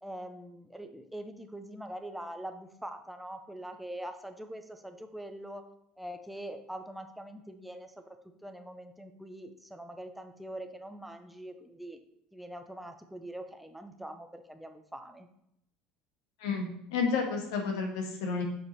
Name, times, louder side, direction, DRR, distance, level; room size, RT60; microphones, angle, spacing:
voice 1, 0.0-5.7 6.0-8.2 8.4-12.0 12.3-15.3, right 1 dB, 5° right, 7 dB, 0.7 m, -43 dB
voice 2, 16.4-18.4, left 5 dB, 85° left, 2 dB, 1.6 m, -31 dB
6.9 x 4.9 x 4.2 m, 0.77 s
supercardioid pair, 105°, 3 cm